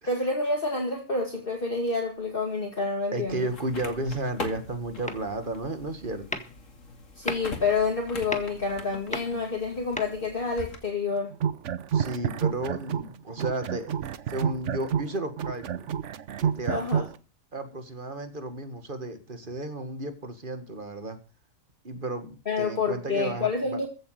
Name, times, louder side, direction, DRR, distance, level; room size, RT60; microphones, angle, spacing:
voice 1, 0.1-3.5 7.2-11.3 16.7-17.0 22.5-23.9, left 4 dB, 40° left, 2.4 m, -28 dB
sound 1, 2.2-2.4 5.1-5.6 5.9-6.1 6.3-10.2, left 1 dB, 5° left, 1.6 m, -38 dB
voice 2, 3.1-6.5 11.9-15.9 16.4-17.1 17.5-21.2 21.8-23.8, right 2 dB, 35° right, 2.1 m, -33 dB
sound 2, 3.3-10.8, left 3 dB, 60° left, 2.6 m, -42 dB
sound 3, 11.3-13.1 13.4-17.1, right 8 dB, 60° right, 1.1 m, -29 dB
15.0 x 7.9 x 6.6 m
omnidirectional pair, 1.5 m